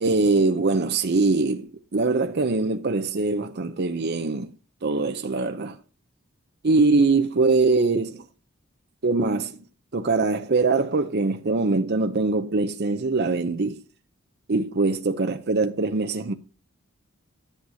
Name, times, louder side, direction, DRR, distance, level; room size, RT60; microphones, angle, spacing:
voice 1, 0.0-4.5 4.8-5.8 6.6-8.2 9.0-9.6 9.9-13.8 14.5-16.3, right 3 dB, 50° right, 0.7 m, -23 dB
11.0 x 7.9 x 2.8 m
head